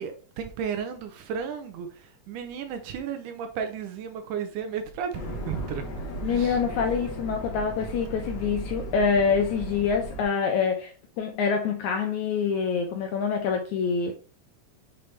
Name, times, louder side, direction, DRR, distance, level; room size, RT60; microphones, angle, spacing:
voice 1, 0.0-1.9 2.3-5.8 6.3-6.6, right 7 dB, 75° right, 2.0 m, -33 dB
sound 1, 5.1-10.2, right 1 dB, 55° left, 2.2 m, -36 dB
voice 2, 6.2-14.1, left 6 dB, 80° left, 1.8 m, -26 dB
6.8 x 4.2 x 3.2 m
omnidirectional pair, 4.0 m